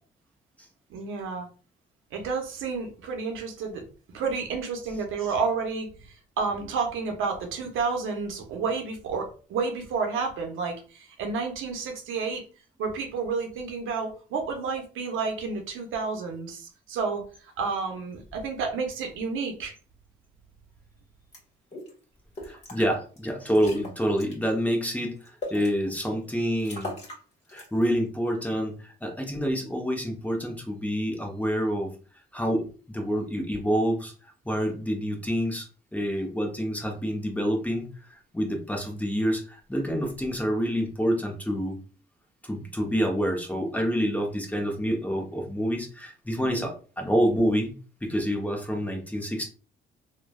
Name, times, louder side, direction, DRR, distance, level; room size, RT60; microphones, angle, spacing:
voice 1, 0.9-1.5 2.1-3.8 4.1-5.9 6.4-12.4 12.8-17.2 17.6-19.7 46.4-46.7, right 5 dB, 85° right, 3 dB, 0.7 m, -30 dB
sound 1, 21.3-21.4 21.7-21.9 22.4-22.8 23.2-23.3 23.5-24.3 24.8-25.7 26.2-26.3 26.6-27.2 27.5-27.9, left 2 dB, 35° left, 1.4 m, -39 dB
voice 2, 22.4-26.9 27.5-31.9 32.3-41.8 42.4-47.7 48.0-49.5, equal, 5° left, 1 dB, 0.8 m, -27 dB
3.2 x 2.2 x 2.2 m, 0.38 s
cardioid pair, 90°, 20 cm